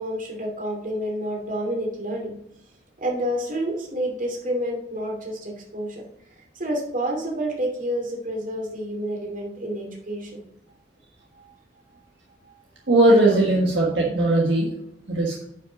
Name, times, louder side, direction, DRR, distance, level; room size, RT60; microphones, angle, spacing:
voice 1, 0.0-2.3 3.0-6.1 6.5-10.4, equal, 45° right, 0 dB, 2.7 m, -29 dB
voice 2, 12.9-14.7 15.1-15.3, right 2 dB, 70° right, -3 dB, 1.7 m, -18 dB
10.0 x 5.7 x 4.0 m, 0.76 s
head